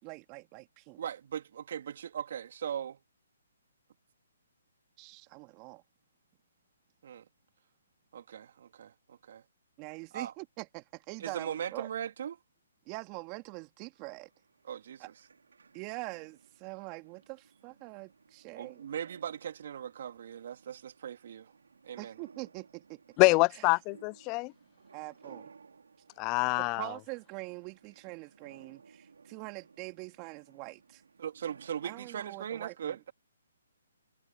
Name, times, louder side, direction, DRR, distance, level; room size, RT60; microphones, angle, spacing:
voice 1, 0.0-1.0 5.0-5.8 9.8-11.9 12.9-14.3 15.0-15.1 15.7-18.8 22.0-23.7 24.9-25.5 26.6-31.0 31.8-33.0, right 28 dB, 30° right, 2.7 m, -44 dB
voice 2, 1.0-3.0 7.0-7.2 8.1-9.4 10.1-10.3 11.2-12.4 14.6-15.1 18.6-21.5 21.8-22.2 31.2-33.1, right 9 dB, 55° right, 3.5 m, -39 dB
sound 1, 14.0-32.2, right 5 dB, 75° right, 5.1 m, -59 dB
voice 3, 23.2-24.5 26.2-26.9, left 28 dB, 25° left, 0.5 m, -25 dB
hypercardioid pair, 140°, 0 cm